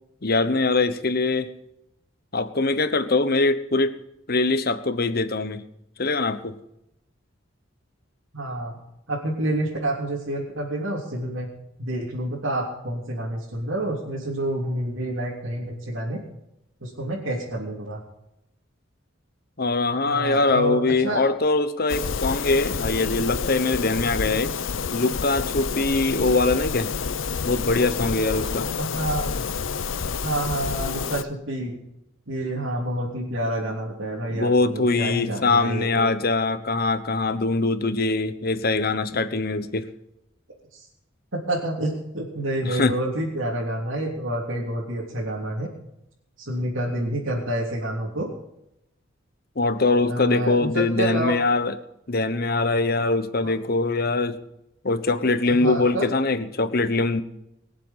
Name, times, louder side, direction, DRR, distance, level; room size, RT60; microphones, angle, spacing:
voice 1, 0.2-1.5 2.3-4.0 4.3-5.6 6.0-6.6 19.6-24.5 24.9-26.9 27.4-28.7 34.3-39.9 42.6-43.0 49.6-51.8 52.1-54.4 54.8-57.2, left 3 dB, 50° left, 11 dB, 1.1 m, -22 dB
voice 2, 8.3-8.7 9.1-11.5 11.8-16.2 16.8-18.0 20.1-21.2 28.8-29.3 30.2-31.8 32.3-36.1 40.7-40.8 41.3-45.7 46.4-48.3 49.9-51.4 53.4-53.5 55.5-56.1, right 1 dB, 75° right, -5 dB, 3.4 m, -28 dB
sound 1, 21.9-31.2, left 5 dB, 75° left, 0.7 m, -28 dB
22.5 x 7.6 x 7.4 m, 0.84 s
head